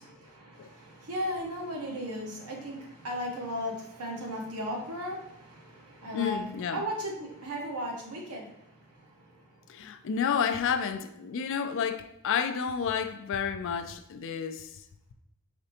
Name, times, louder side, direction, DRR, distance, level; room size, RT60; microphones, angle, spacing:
voice 1, 0.0-6.4 6.7-9.6, equal, 85° right, 1.1 m, -36 dB
voice 2, 6.1-6.8 9.7-14.7, left 7 dB, 60° left, 0.4 m, -30 dB
5.0 x 3.2 x 2.8 m
head